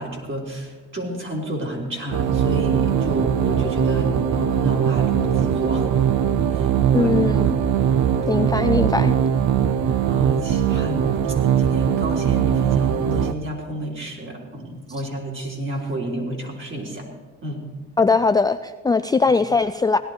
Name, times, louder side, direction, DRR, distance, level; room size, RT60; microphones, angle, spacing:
voice 1, 0.0-5.9 6.5-6.7 6.9-7.2 10.1-11.3 11.6-17.1 17.4-17.6, right 1 dB, 40° right, -1 dB, 3.8 m, -30 dB
sound 1, 2.1-13.3, right 8 dB, 70° right, 0.8 m, -20 dB
voice 2, 6.9-7.5 8.3-9.1 18.0-20.0, left 4 dB, 15° left, 9 dB, 0.4 m, -20 dB
17.5 x 11.5 x 4.5 m, 1.3 s
cardioid pair, 90°, 30 cm